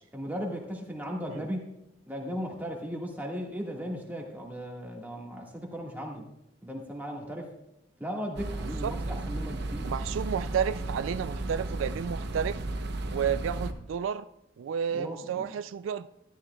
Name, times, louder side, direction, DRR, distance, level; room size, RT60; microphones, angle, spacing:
voice 1, 0.1-1.7 2.1-6.3 6.6-7.5 8.0-9.9 14.9-15.5, equal, 10° right, -1 dB, 1.7 m, -36 dB
sound 1, 8.4-13.7, right 2 dB, 60° right, 0.8 m, -34 dB
voice 2, 9.8-12.6 13.1-14.3 14.6-16.1, right 7 dB, 80° right, 13 dB, 0.3 m, -31 dB
13.0 x 12.0 x 2.3 m, 0.86 s
head